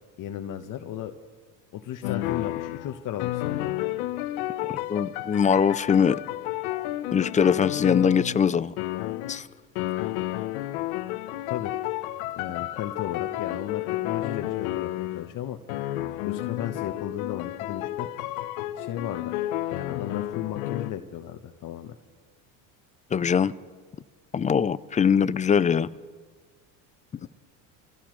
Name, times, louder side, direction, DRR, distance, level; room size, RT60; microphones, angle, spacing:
voice 1, 0.2-1.1 1.7-3.7 11.5-11.8 12.4-15.6 16.2-18.1 18.8-19.4 19.7-22.0 27.1-27.3, left 10 dB, 50° left, 5 dB, 1.1 m, -35 dB
sound 1, 2.0-8.5 8.8-9.5 9.8-15.3 15.7-20.9, left 15 dB, 80° left, 0.9 m, -31 dB
voice 2, 4.6-6.2 7.1-8.7 9.3-9.5 23.1-23.5 24.3-25.9, left 7 dB, 20° left, 17 dB, 0.4 m, -22 dB
27.5 x 16.0 x 3.2 m, 1.5 s
supercardioid pair, 105°, 41 cm